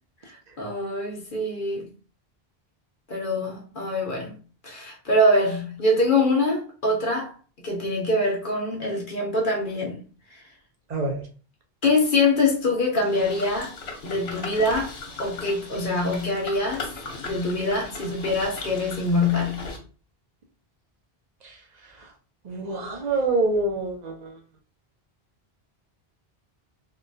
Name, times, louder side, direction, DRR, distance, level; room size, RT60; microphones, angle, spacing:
voice 1, 0.2-1.9 3.1-4.4 4.6-7.3 7.6-10.0 10.3-10.4 11.8-13.7 14.0-16.9 17.2-19.7, left 2 dB, 55° left, 0.9 m, -24 dB
voice 2, 10.9-11.2 21.4-21.6 22.0-22.1 22.4-24.3, right 2 dB, 50° right, 0.7 m, -26 dB
sound 1, 13.0-19.8, left 3 dB, 80° left, 1.1 m, -38 dB
3.6 x 2.3 x 2.6 m
omnidirectional pair, 1.0 m